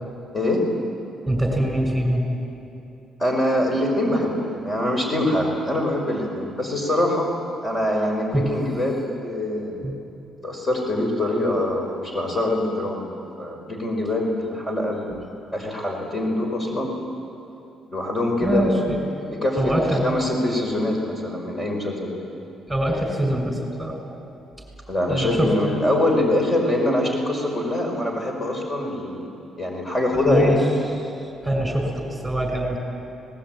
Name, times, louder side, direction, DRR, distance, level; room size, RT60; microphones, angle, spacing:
voice 1, 0.3-0.7 3.2-7.3 7.6-9.8 10.4-13.1 13.4-16.9 17.9-18.7 19.0-19.7 20.0-22.3 24.9-29.3 29.6-30.6, left 1 dB, 30° left, 0 dB, 5.2 m, -24 dB
voice 2, 1.3-2.2 8.3-8.5 9.8-9.9 18.4-19.0 19.6-20.4 22.7-24.0 25.1-25.5 30.3-30.6 31.4-32.8, right 1 dB, 5° right, 3 dB, 6.3 m, -23 dB
25.0 x 19.5 x 9.2 m, 2.8 s
cardioid pair, 90°, 0 cm